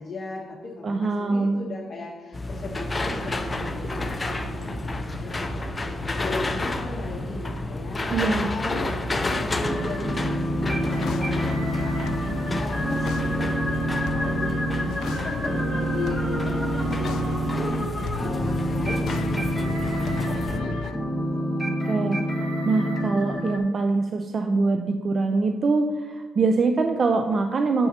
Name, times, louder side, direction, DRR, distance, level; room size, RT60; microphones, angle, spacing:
voice 1, 0.0-8.9 9.3-14.7 15.0-21.5, left 3 dB, 45° left, -3 dB, 1.0 m, -37 dB
voice 2, 0.8-1.6 8.1-8.5 21.6-27.9, right 3 dB, 45° right, 5 dB, 0.5 m, -24 dB
sound 1, 2.3-20.6, left 1 dB, 25° left, 0.6 m, -30 dB
sound 2, 9.6-23.6, right 1 dB, ahead, 1.3 m, -27 dB
sound 3, 10.7-20.9, left 7 dB, 75° left, 0.3 m, -36 dB
8.9 x 6.9 x 2.8 m, 1.4 s
cardioid pair, 90°, 0 cm